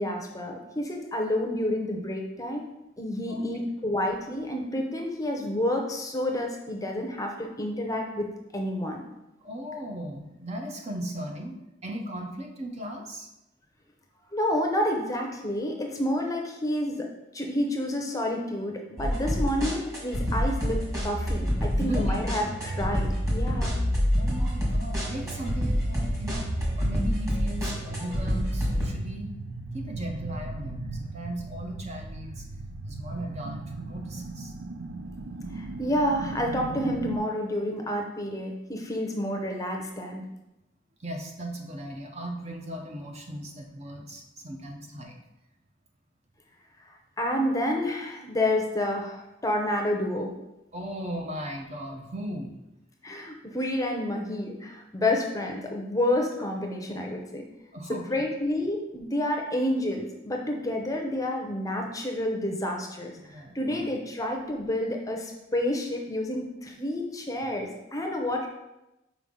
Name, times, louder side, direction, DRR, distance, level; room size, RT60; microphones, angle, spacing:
voice 1, 0.0-2.6 3.0-9.0 14.3-17.1 17.3-23.8 35.5-40.2 46.9-50.3 53.0-57.5 57.9-68.5, left 1 dB, 20° left, 2 dB, 0.6 m, -29 dB
voice 2, 9.4-13.3 21.7-22.2 24.1-26.5 26.8-29.3 29.7-32.4 32.8-34.5 41.0-45.2 50.7-52.5 57.7-58.0 63.2-63.8, right 1 dB, 35° right, 2 dB, 0.7 m, -37 dB
sound 1, 19.0-28.9, equal, 20° right, 1.5 m, -27 dB
sound 2, 22.2-37.2, right 2 dB, 85° right, 0.5 m, -37 dB
5.5 x 4.6 x 3.7 m, 0.93 s
head